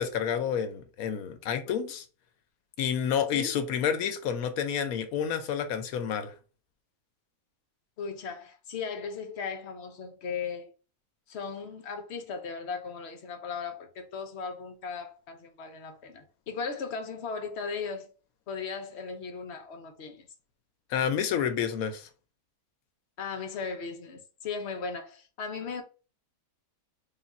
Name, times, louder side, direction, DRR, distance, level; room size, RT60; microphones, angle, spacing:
voice 1, 0.0-2.0 2.8-6.3 20.9-22.1, left 8 dB, 85° left, 1.1 m, -29 dB
voice 2, 8.0-10.7 11.3-18.1 18.5-20.3 23.2-25.8, left 5 dB, 55° left, 0.9 m, -37 dB
3.7 x 2.4 x 4.0 m
omnidirectional pair, 1.5 m